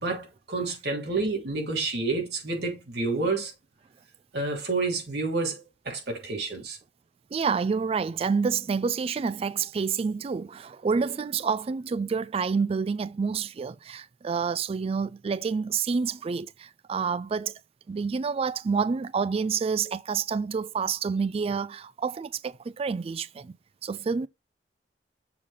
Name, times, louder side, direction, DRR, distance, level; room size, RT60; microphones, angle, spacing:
voice 1, 0.0-3.5 4.3-6.8, right 3 dB, 65° right, 3.0 m, -29 dB
voice 2, 7.3-17.6 17.9-23.5 23.8-24.3, right 5 dB, 35° right, 0.3 m, -28 dB
7.0 x 3.7 x 4.9 m
head